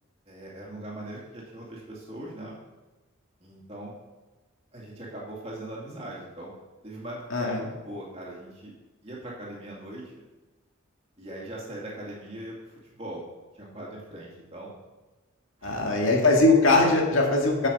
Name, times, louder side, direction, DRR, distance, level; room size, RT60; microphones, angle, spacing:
voice 1, 0.3-2.6 3.4-4.0 4.7-6.5 6.8-8.7 9.0-10.2 11.2-13.2 13.5-14.7 15.6-16.1, right 1 dB, 30° right, -4 dB, 2.6 m, -40 dB
voice 2, 7.3-7.6 15.6-17.7, left 2 dB, 70° left, 0 dB, 2.0 m, -21 dB
9.1 x 7.4 x 5.3 m, 1.2 s
head